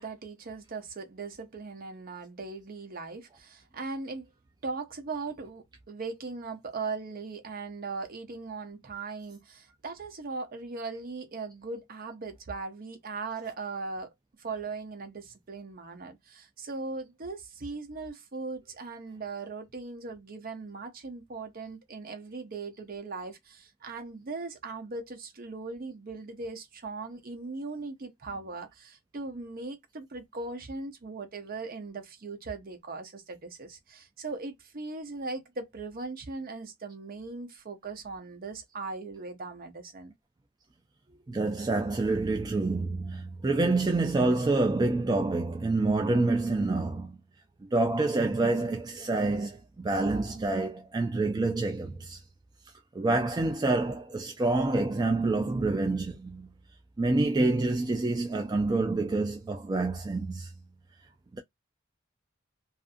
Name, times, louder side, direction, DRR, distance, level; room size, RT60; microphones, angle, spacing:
voice 1, 0.0-4.3 4.6-14.1 14.4-40.1, right 3 dB, 45° right, 0.7 m, -39 dB
voice 2, 41.3-47.2 47.7-52.2 52.9-56.5 57.0-60.5 61.3-61.4, right 2 dB, 20° right, 0.3 m, -27 dB
2.5 x 2.4 x 2.5 m
head